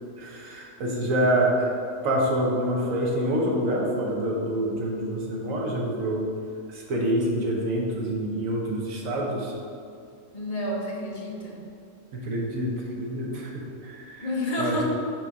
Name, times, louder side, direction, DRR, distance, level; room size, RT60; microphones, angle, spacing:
voice 1, 0.2-1.7 2.0-6.3 6.7-9.5 12.1-14.3 14.6-14.8, right 1 dB, 80° right, -2 dB, 1.4 m, -26 dB
voice 2, 10.3-11.7 14.2-14.8, left 1 dB, 35° left, -2 dB, 0.9 m, -29 dB
6.2 x 4.0 x 4.6 m, 2.4 s
omnidirectional pair, 1.4 m